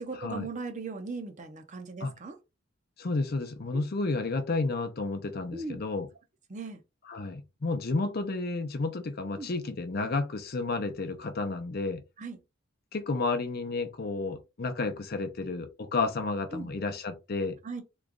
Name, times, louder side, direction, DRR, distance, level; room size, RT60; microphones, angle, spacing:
voice 1, 0.0-2.4 5.5-5.8 6.5-6.8 9.4-9.5 12.2-12.4 16.5-16.7 17.6-17.8, right 3 dB, 40° right, 0.7 m, -38 dB
voice 2, 3.0-6.1 7.1-12.0 12.9-17.6, left 3 dB, 50° left, 0.6 m, -31 dB
3.1 x 2.4 x 3.6 m
head